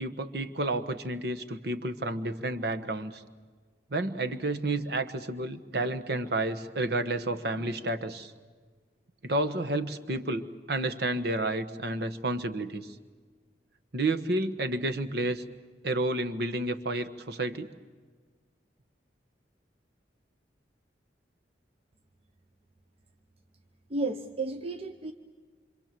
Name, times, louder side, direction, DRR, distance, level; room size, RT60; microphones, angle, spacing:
voice 1, 0.0-3.2 3.9-8.3 9.2-12.9 13.9-15.4 15.8-17.7, right 2 dB, 60° right, 9 dB, 1.3 m, -30 dB
voice 2, 23.9-25.1, right 2 dB, 35° right, 6 dB, 0.9 m, -32 dB
27.0 x 26.0 x 7.6 m, 1.5 s
head